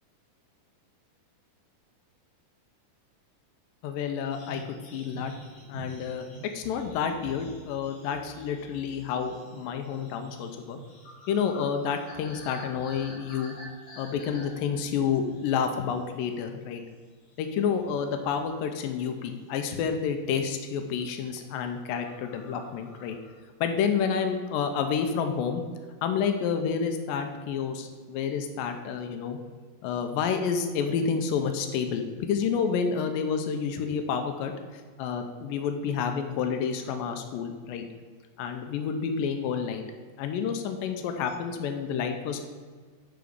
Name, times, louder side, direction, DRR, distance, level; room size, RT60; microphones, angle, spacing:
voice 1, 3.8-4.6 4.9-5.3 5.7-10.8 11.3-13.6 14.0-16.8 17.4-23.2 23.6-25.6 26.0-29.4 29.8-34.5 35.0-37.9 38.4-39.8 40.2-42.4, left 6 dB, 90° left, 6 dB, 2.4 m, -29 dB
sound 1, 4.3-16.0 16.3-16.6 17.0-18.6 18.8-19.6 20.1-20.4 20.6-21.0 21.3-21.4 21.7-21.8 22.0-23.4, right 1 dB, 65° left, 4.1 m, -48 dB
11.5 x 4.0 x 5.1 m, 1.6 s
omnidirectional pair, 3.9 m